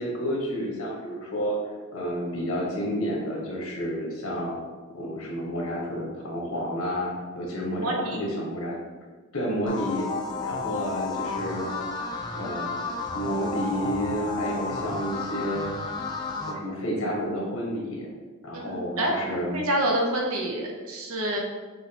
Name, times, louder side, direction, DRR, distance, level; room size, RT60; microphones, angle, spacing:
voice 1, 0.0-1.6 1.9-4.5 4.9-8.8 9.3-10.1 10.4-11.8 12.3-12.8 13.1-15.7 16.4-18.1 18.4-19.6, equal, 85° left, -2 dB, 1.2 m, -30 dB
voice 2, 7.8-8.2 18.5-19.1 19.5-21.4, right 1 dB, 90° right, 0 dB, 0.9 m, -27 dB
sound 1, 9.7-16.5, left 4 dB, 20° left, 0.4 m, -32 dB
5.7 x 3.2 x 2.9 m, 1.4 s
head